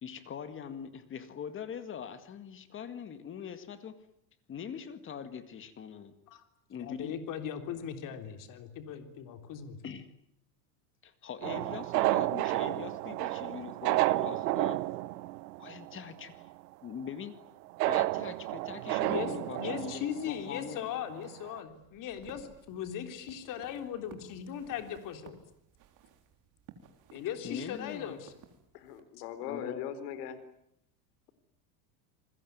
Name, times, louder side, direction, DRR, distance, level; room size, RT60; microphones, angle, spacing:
voice 1, 0.0-4.1 4.5-6.1 6.7-7.2 9.8-10.1 11.0-14.9 15.6-16.5 16.8-17.4 17.8-20.9 27.4-28.2 29.5-30.0, left 7 dB, 25° left, 11 dB, 2.0 m, -42 dB
voice 2, 6.8-9.8 19.0-25.4 27.1-28.3, left 9 dB, 40° left, 7 dB, 3.6 m, -38 dB
sound 1, 11.4-16.1 16.4-16.5 17.8-20.7 21.2-21.3 21.5-21.6, right 19 dB, 90° right, 1.1 m, -31 dB
sound 2, 21.7-29.0, right 8 dB, 40° right, 3.6 m, -57 dB
voice 3, 28.7-30.4, left 9 dB, 75° left, 14 dB, 4.2 m, -40 dB
28.5 x 21.0 x 9.5 m, 0.76 s
supercardioid pair, 155°, 47 cm